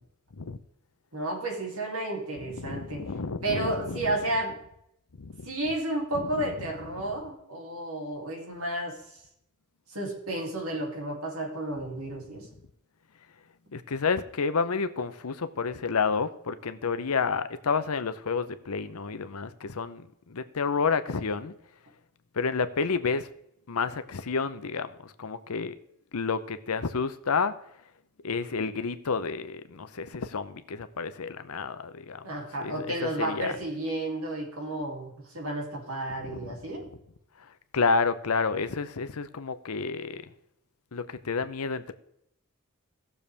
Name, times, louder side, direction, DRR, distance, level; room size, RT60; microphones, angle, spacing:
voice 1, 1.1-3.1 3.4-4.6 5.4-9.2 9.9-12.5 32.2-36.9, right 1 dB, 70° right, 1 dB, 2.9 m, -32 dB
voice 2, 2.5-4.2 5.2-5.5 6.4-6.5 13.7-21.5 22.3-23.3 23.7-25.8 26.1-27.6 28.2-33.5 36.2-36.5 37.4-37.5 37.7-40.3 40.9-41.9, left 5 dB, 75° left, 12 dB, 0.7 m, -30 dB
17.5 x 6.9 x 3.4 m, 0.77 s
head